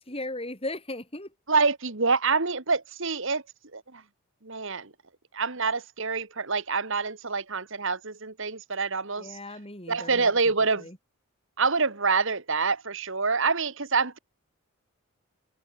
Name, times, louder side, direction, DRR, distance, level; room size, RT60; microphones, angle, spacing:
voice 1, 0.0-1.3 9.2-10.3 10.8-11.0, left 2 dB, 25° left, 7.9 m, -37 dB
voice 2, 1.5-3.4 3.7-4.0 4.4-4.9 5.3-9.4 9.9-10.9 11.6-14.2, right 4 dB, 60° right, 1.9 m, -26 dB
head